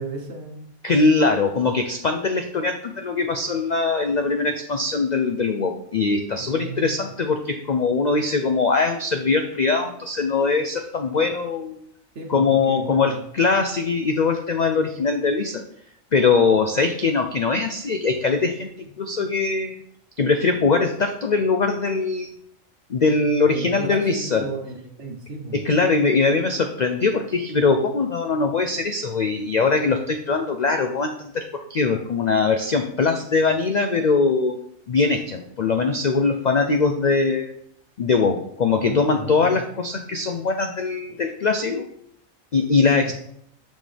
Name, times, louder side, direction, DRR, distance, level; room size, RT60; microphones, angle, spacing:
voice 1, 0.0-0.7 6.4-7.0 12.1-13.3 23.4-25.6 38.7-39.6 42.9-43.1, right 3 dB, 55° right, 3 dB, 1.4 m, -34 dB
voice 2, 0.8-11.8 12.3-15.6 16.1-18.7 19.0-19.8 20.2-22.3 22.9-24.4 25.5-34.6 34.9-37.5 38.0-41.9 42.5-43.1, left 4 dB, 75° left, 6 dB, 0.4 m, -21 dB
6.4 x 6.2 x 3.4 m, 0.71 s
omnidirectional pair, 1.4 m